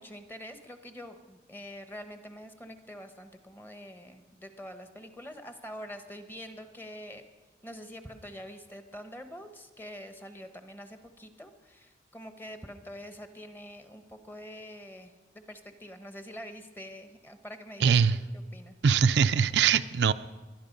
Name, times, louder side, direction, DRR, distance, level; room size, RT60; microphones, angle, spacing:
voice 1, 0.0-7.2 7.6-18.2 18.5-18.7, equal, 10° left, 8 dB, 1.0 m, -45 dB
voice 2, 17.8-18.2 18.8-20.1, right 6 dB, 75° right, 11 dB, 0.4 m, -22 dB
22.0 x 11.0 x 5.3 m, 1.3 s
head